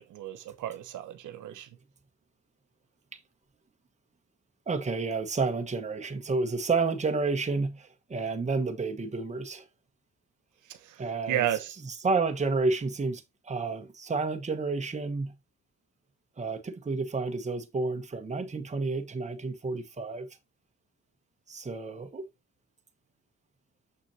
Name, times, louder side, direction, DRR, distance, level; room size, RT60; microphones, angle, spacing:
voice 1, 0.0-1.7 11.3-11.7, right 11 dB, 80° right, 1.1 m, -32 dB
voice 2, 4.7-9.6 11.0-11.4 11.8-15.3 16.4-20.3 21.5-22.3, right 3 dB, 25° right, 1.2 m, -30 dB
6.9 x 6.2 x 2.8 m
cardioid pair, 90°, 30 cm